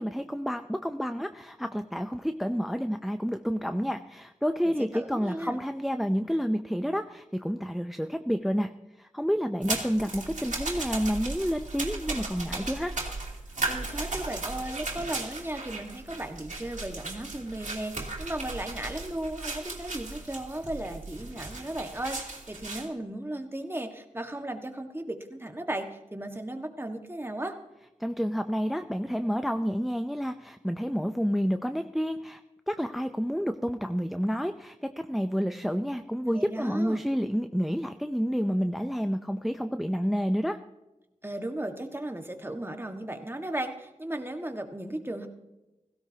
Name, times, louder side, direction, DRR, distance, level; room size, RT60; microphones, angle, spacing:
voice 1, 0.0-8.7 9.0-12.9 28.0-32.4 32.7-40.6, equal, ahead, 9 dB, 0.6 m, -29 dB
voice 2, 4.6-5.6 13.7-27.6 36.3-37.0 41.2-45.3, right 1 dB, 20° right, 5 dB, 1.6 m, -36 dB
sound 1, 9.6-22.9, right 3 dB, 80° right, 2.8 m, -36 dB
16.5 x 16.0 x 2.9 m, 0.99 s
wide cardioid pair, 55°, 13 cm